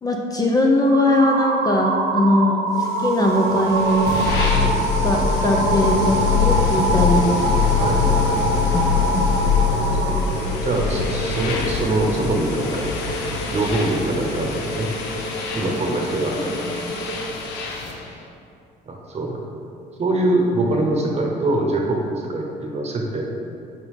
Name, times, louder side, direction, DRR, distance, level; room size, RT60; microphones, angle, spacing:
voice 1, 0.0-4.2 5.0-7.4 8.7-9.2 16.6-16.9, left 1 dB, 20° left, 1 dB, 0.6 m, -20 dB
sound 1, 0.9-10.2, right 4 dB, 80° right, 0.7 m, -24 dB
sound 2, 2.7-17.9, equal, 45° left, 1.3 m, -33 dB
sound 3, 3.5-18.1, left 6 dB, 80° left, 0.8 m, -24 dB
voice 2, 7.8-8.4 9.7-12.9 13.5-14.9 15.5-16.4 18.9-19.4 20.0-23.2, right 2 dB, 40° right, 0 dB, 1.0 m, -24 dB
6.2 x 3.7 x 4.8 m, 2.5 s
cardioid pair, 110°, 17 cm